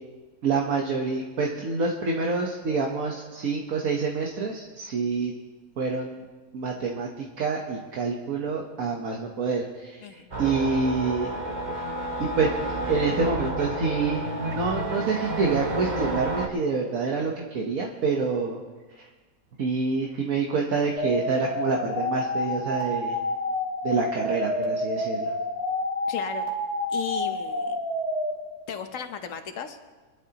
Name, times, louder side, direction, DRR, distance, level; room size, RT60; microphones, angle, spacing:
voice 1, 0.4-5.3 5.8-6.2 6.5-11.3 12.2-18.6 18.9-19.1 19.6-23.2 23.8-25.3, right 4 dB, 70° right, 0 dB, 1.6 m, -27 dB
voice 2, 10.0-10.3 26.1-26.5 26.9-27.8 28.7-29.8, left 7 dB, 60° left, 8 dB, 1.3 m, -35 dB
sound 1, 10.3-16.5, right 2 dB, 35° right, 1.3 m, -30 dB
sound 2, 21.0-28.3, left 1 dB, 25° left, 2.5 m, -28 dB
25.0 x 11.0 x 2.9 m, 1.3 s
omnidirectional pair, 1.6 m